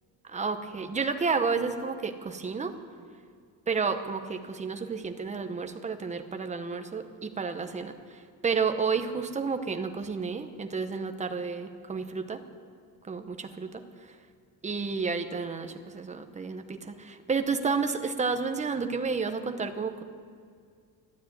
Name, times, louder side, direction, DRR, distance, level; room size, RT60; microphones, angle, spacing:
voice 1, 0.3-2.7 3.7-7.9 8.4-12.4 13.1-13.8 14.6-20.0, right 5 dB, 20° right, 8 dB, 0.9 m, -31 dB
12.5 x 12.0 x 9.0 m, 2.1 s
cardioid pair, 150°, 38 cm